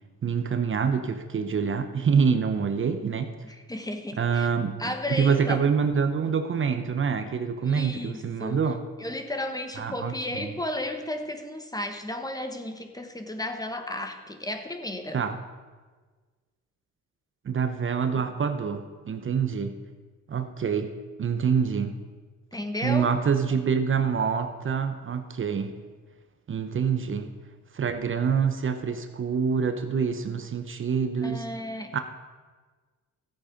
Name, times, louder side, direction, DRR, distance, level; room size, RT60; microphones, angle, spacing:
voice 1, 0.2-3.3 4.2-8.8 9.8-10.5 15.1-15.4 17.4-19.7 20.3-20.9 21.2-22.0 22.8-25.7 26.5-27.3 27.7-31.5 31.9-32.0, right 6 dB, 40° right, 8 dB, 0.9 m, -26 dB
voice 2, 3.4-4.5 4.8-5.6 7.6-8.7 9.0-15.2 22.5-23.1 31.2-32.0, left 1 dB, 10° left, 6 dB, 1.3 m, -33 dB
14.0 x 8.5 x 5.2 m, 1.4 s
cardioid pair, 90°, 30 cm